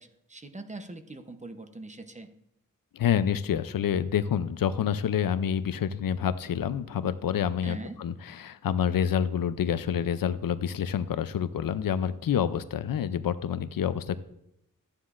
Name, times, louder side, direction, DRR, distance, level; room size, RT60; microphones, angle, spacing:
voice 1, 0.0-2.3 7.6-8.0, right 2 dB, 20° right, 7 dB, 0.7 m, -42 dB
voice 2, 2.9-8.1 8.4-14.2, left 8 dB, 85° left, 13 dB, 0.5 m, -28 dB
13.0 x 9.5 x 2.5 m, 0.80 s
wide cardioid pair, 95°, 33 cm